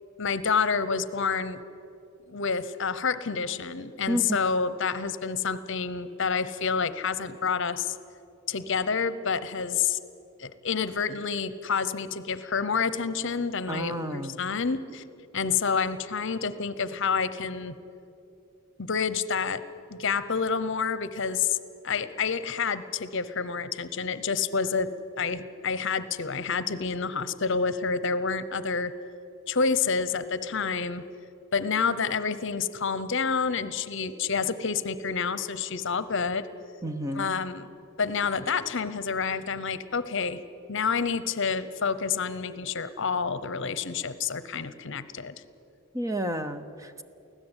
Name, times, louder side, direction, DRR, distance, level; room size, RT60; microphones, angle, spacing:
voice 1, 0.2-1.6 2.3-8.0 8.5-10.0 10.4-15.0 15.3-17.8 18.8-19.6 19.9-21.6 21.8-24.9 25.2-28.9 29.5-31.0 31.5-36.5 37.1-37.7 38.0-40.4 40.7-45.3, left 5 dB, 60° left, 15 dB, 0.8 m, -28 dB
voice 2, 4.1-4.4 13.7-14.4 36.8-37.3 45.9-47.0, right 1 dB, 15° right, 9 dB, 0.8 m, -31 dB
24.5 x 16.5 x 9.0 m, 2.7 s
head